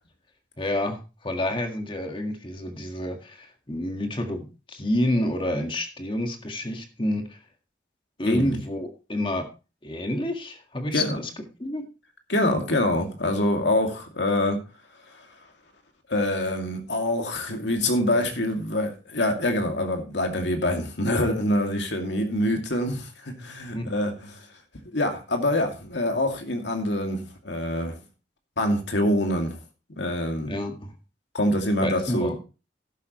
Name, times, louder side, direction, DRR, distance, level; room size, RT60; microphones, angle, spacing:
voice 1, 0.6-7.4 8.2-9.5 9.8-11.3 11.6-11.9 23.7-23.9 30.4-30.9 31.8-32.4, left 1 dB, 30° left, 1.8 m, -28 dB
voice 2, 8.3-8.6 10.9-11.2 12.3-14.6 16.1-24.4 24.8-27.9 28.6-29.6 30.0-30.6 31.3-32.4, left 1 dB, 80° left, 2.5 m, -25 dB
12.5 x 11.0 x 3.1 m
head